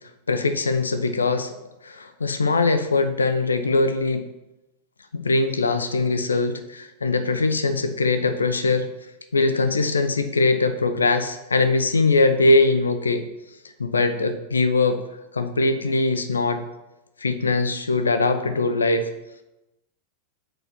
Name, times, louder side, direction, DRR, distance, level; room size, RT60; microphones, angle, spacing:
voice 1, 0.3-1.5 1.8-4.2 5.2-8.9 9.3-13.2 13.8-15.0 15.3-16.6 17.2-19.1, left 3 dB, 75° left, 9 dB, 0.7 m, -21 dB
7.6 x 5.2 x 6.0 m, 0.94 s
figure-of-eight pair, 90°, 0 cm